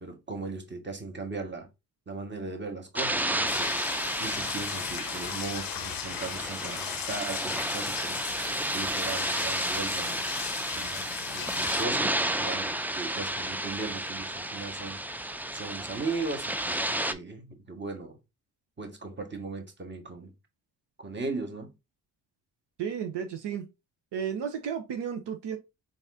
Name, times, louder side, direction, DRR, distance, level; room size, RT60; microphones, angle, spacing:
voice 1, 0.0-1.7 2.1-3.8 4.2-8.2 8.7-10.2 10.7-15.0 15.5-18.2 18.8-20.3 21.0-21.7, right 3 dB, 25° right, 1.4 m, -38 dB
sound 1, 2.9-17.1, right 1 dB, 5° right, 0.4 m, -32 dB
sound 2, 3.5-11.9, left 11 dB, 50° left, 0.6 m, -37 dB
voice 2, 22.8-23.7 24.1-25.6, right 7 dB, 70° right, 0.8 m, -33 dB
4.0 x 3.7 x 2.6 m
supercardioid pair, 45°, 44 cm